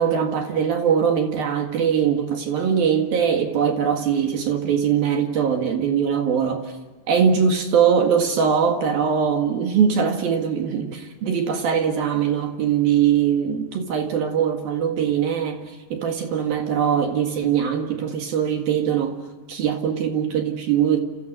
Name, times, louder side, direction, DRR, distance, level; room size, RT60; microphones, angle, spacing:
voice 1, 0.0-6.7 7.1-19.2 19.5-21.0, right 7 dB, 60° right, 4 dB, 3.4 m, -21 dB
29.5 x 28.5 x 6.6 m, 1.2 s
omnidirectional pair, 5.1 m